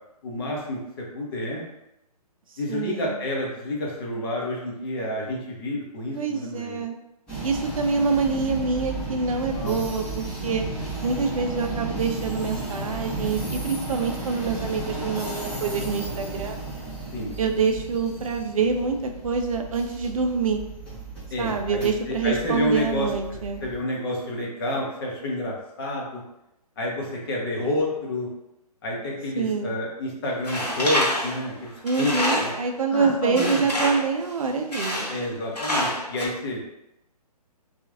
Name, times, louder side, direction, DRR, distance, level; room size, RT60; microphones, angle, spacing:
voice 1, 0.2-1.6 2.6-6.8 9.5-9.9 17.1-17.5 21.3-26.2 26.8-28.3 28.8-31.7 32.0-32.5 32.9-33.7 35.1-36.6, left 1 dB, 35° left, -2 dB, 0.8 m, -29 dB
voice 2, 2.7-3.2 6.1-7.0 7.4-10.7 11.0-16.6 17.4-20.6 21.4-23.6 29.4-29.7 31.8-35.1, right 5 dB, 60° right, 5 dB, 0.5 m, -26 dB
sound 1, 7.3-23.8, right 2 dB, 5° left, 0.9 m, -34 dB
Tools, 30.4-32.7 33.4-34.1 34.7-35.3 35.5-36.3, left 1 dB, 80° left, 0.9 m, -27 dB
2.9 x 2.4 x 2.4 m, 0.86 s
figure-of-eight pair, 135°, 20 cm